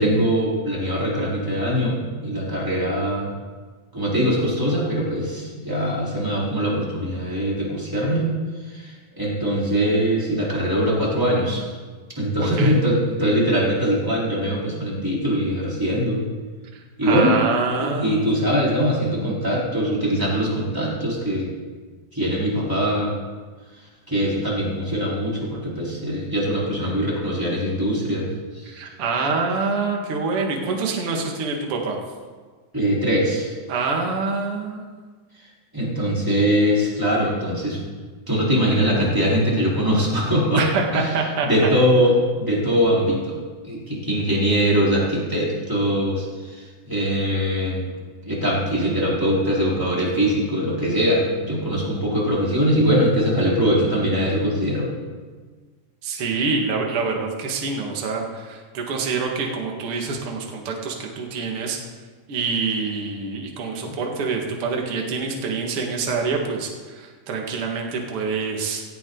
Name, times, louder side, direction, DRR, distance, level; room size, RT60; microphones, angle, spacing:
voice 1, 0.0-3.3 3.9-8.3 8.8-8.9 9.2-11.6 12.2-16.2 17.0-17.3 18.0-21.5 22.1-23.1 24.1-28.3 32.7-33.5 35.7-37.8 38.3-40.6 40.9-41.1 41.4-42.1 42.4-43.4 43.7-46.3 46.9-47.8 48.2-54.9, equal, 5° right, -6 dB, 3.9 m, -22 dB
voice 2, 12.4-12.8 16.7-18.4 28.6-32.0 33.7-34.9 40.5-41.5 56.0-61.8 62.3-68.8, right 4 dB, 45° right, 0 dB, 2.4 m, -26 dB
17.0 x 14.5 x 4.0 m, 1.5 s
omnidirectional pair, 4.2 m